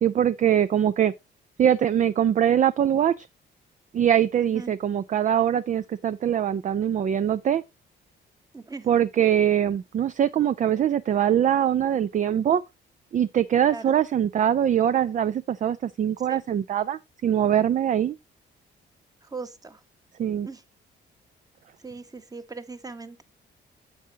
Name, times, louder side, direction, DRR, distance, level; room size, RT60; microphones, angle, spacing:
voice 1, 0.0-1.1 1.6-3.3 3.9-7.6 8.9-12.6 13.1-18.2 20.2-20.5, right 10 dB, 40° right, 0.4 m, -22 dB
voice 2, 4.4-4.7 8.5-8.9 13.7-13.9 16.3-16.4 19.2-19.8 20.4-20.6 21.8-23.2, right 4 dB, 20° right, 1.1 m, -39 dB
9.4 x 7.5 x 2.8 m
cardioid pair, 90°, 20 cm